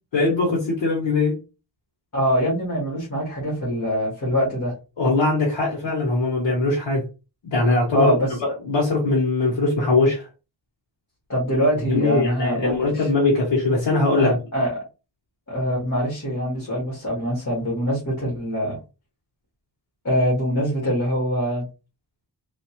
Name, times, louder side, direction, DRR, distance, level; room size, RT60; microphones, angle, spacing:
voice 1, 0.1-1.4 5.0-7.0 7.4-8.2 8.4-10.3 11.9-14.4, left 2 dB, 85° left, -3 dB, 1.3 m, -21 dB
voice 2, 2.1-4.7 7.9-8.3 11.3-13.1 14.2-14.8 15.5-18.8 20.0-21.7, equal, 40° left, -5 dB, 1.8 m, -24 dB
3.6 x 2.8 x 3.0 m, 0.30 s
wide cardioid pair, 115°, 43 cm